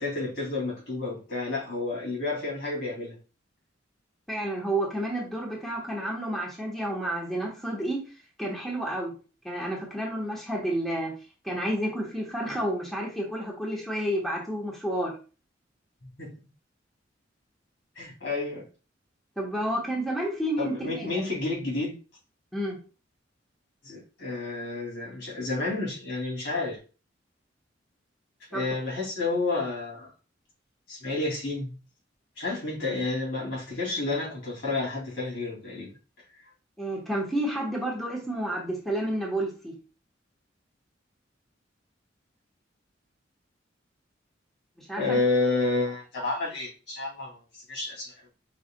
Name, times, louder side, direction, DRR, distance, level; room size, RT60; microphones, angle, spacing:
voice 1, 0.0-3.2 16.0-16.4 18.0-18.6 20.6-21.9 23.8-26.8 28.5-30.1 30.9-31.7 32.4-35.9 44.9-47.4 47.7-48.1, left 3 dB, 75° left, 2.6 m, -30 dB
voice 2, 4.3-8.0 8.4-9.1 9.4-11.1 11.4-15.1 19.4-21.2 22.5-22.8 28.5-28.7 36.8-39.7 44.8-45.2, right 1 dB, ahead, 1.3 m, -30 dB
5.0 x 4.6 x 2.2 m
head